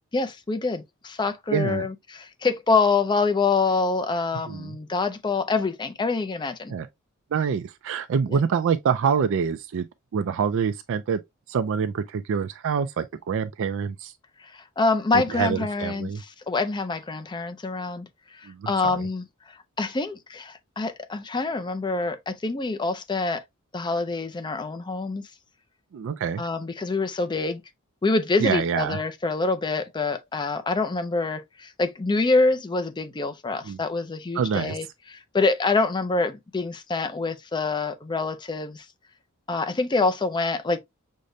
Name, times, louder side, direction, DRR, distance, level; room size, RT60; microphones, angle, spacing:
voice 1, 0.1-6.7 8.3-8.4 14.4-23.4 23.7-25.3 26.4-27.6 28.0-38.9 39.5-40.8, left 3 dB, 20° left, 0.4 m, -26 dB
voice 2, 1.5-1.9 4.5-4.7 6.7-6.9 7.3-9.9 10.1-11.2 11.5-14.1 15.1-16.2 18.4-19.0 25.9-26.4 28.4-29.0 33.6-33.8 34.3-34.8, right 6 dB, 60° right, 0.4 m, -26 dB
6.3 x 2.1 x 2.6 m
head